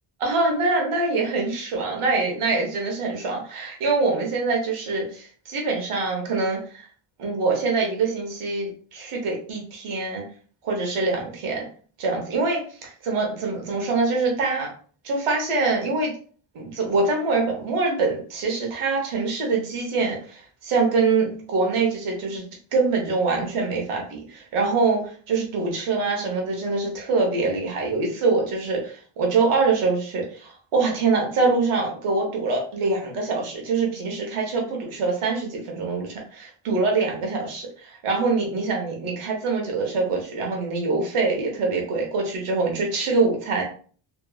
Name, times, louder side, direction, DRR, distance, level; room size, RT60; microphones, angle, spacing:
voice 1, 0.2-6.9 7.2-10.2 10.6-11.7 12.0-14.7 15.0-16.1 16.5-22.4 22.7-43.6, right 3 dB, 85° right, 0 dB, 1.1 m, -24 dB
2.9 x 2.7 x 2.3 m, 0.43 s
cardioid pair, 70°, 49 cm